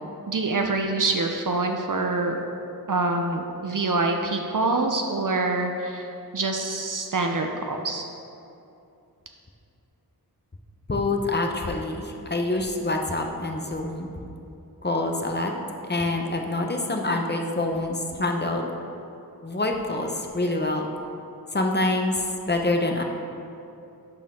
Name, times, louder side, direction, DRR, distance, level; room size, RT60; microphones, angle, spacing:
voice 1, 0.3-2.4 2.9-8.0, right 3 dB, 55° right, 3 dB, 0.6 m, -25 dB
voice 2, 10.9-14.1 14.8-15.5 15.9-18.7 19.4-20.8 21.5-23.0, left 2 dB, 25° left, 2 dB, 0.8 m, -26 dB
11.5 x 4.4 x 3.6 m, 2.7 s
wide cardioid pair, 55°, 38 cm